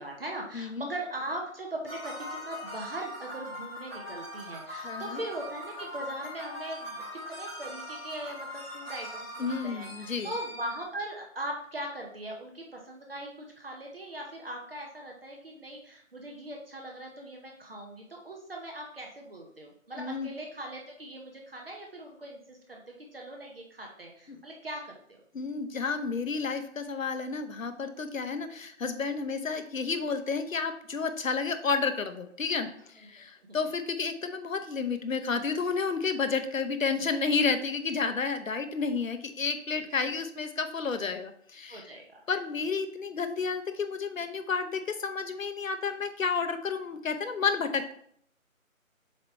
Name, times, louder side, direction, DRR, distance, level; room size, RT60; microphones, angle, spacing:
voice 1, 0.0-22.8 23.1-25.2 33.5-33.6 39.7-39.9 41.7-42.2, right 1 dB, 45° right, 0 dB, 0.9 m, -40 dB
voice 2, 0.5-0.9 4.8-5.2 9.4-10.3 20.0-20.3 24.3-24.4 25.3-32.7 32.9-41.9 42.3-47.9, left 5 dB, 70° left, 8 dB, 0.9 m, -31 dB
sound 1, 1.8-10.8, equal, 5° right, 1.4 m, -41 dB
7.4 x 3.0 x 4.3 m, 0.65 s
figure-of-eight pair, 170°, 41 cm